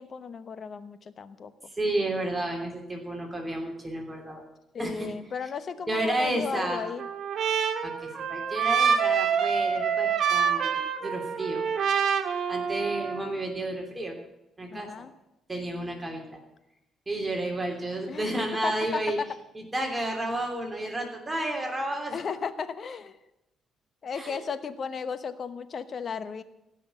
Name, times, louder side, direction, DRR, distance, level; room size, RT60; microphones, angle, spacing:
voice 1, 0.0-1.5 4.7-7.1 14.7-15.1 18.1-19.3 22.1-23.2 24.0-26.4, left 6 dB, 50° left, 12 dB, 1.0 m, -35 dB
voice 2, 1.7-4.4 4.8-5.1 5.9-6.8 7.8-11.7 12.5-14.1 14.6-15.1 15.5-16.2 17.1-19.2 19.5-22.2 24.1-24.4, right 1 dB, 15° right, 2 dB, 3.1 m, -31 dB
Trumpet, 6.5-13.3, right 7 dB, 65° right, 1.8 m, -27 dB
16.0 x 6.2 x 9.2 m, 0.91 s
cardioid pair, 90°, 0 cm